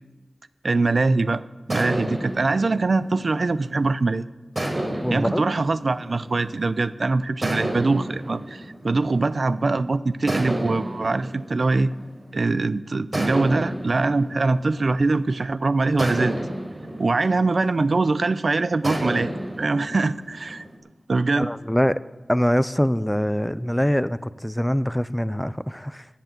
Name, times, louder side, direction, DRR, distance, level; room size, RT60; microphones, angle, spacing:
voice 1, 0.6-1.4 1.7-4.3 5.1-11.9 12.3-16.4 17.0-20.6 21.1-21.5, right 3 dB, 75° right, 15 dB, 0.5 m, -23 dB
sound 1, 1.7-4.0 4.6-6.8 7.4-9.7 10.3-12.5 13.1-15.4 16.0-18.2 18.8-20.7, right 1 dB, 35° right, 3.9 m, -31 dB
voice 2, 5.0-5.5 21.4-22.0 22.3-26.1, equal, 5° left, 16 dB, 0.5 m, -23 dB
15.0 x 8.1 x 7.5 m, 1.1 s
wide cardioid pair, 55°, 0 cm